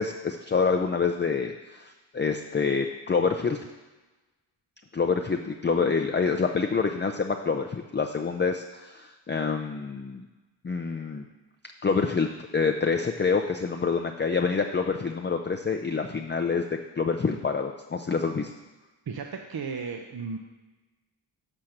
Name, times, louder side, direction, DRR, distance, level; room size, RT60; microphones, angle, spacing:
voice 1, 0.0-3.6 4.9-10.3 10.6-11.2 11.8-16.6 17.0-18.5, left 5 dB, 25° left, 4 dB, 0.5 m, -27 dB
voice 2, 19.1-20.4, right 5 dB, 50° right, 3 dB, 0.8 m, -34 dB
7.4 x 4.5 x 6.5 m, 1.2 s
cardioid pair, 45°, 50 cm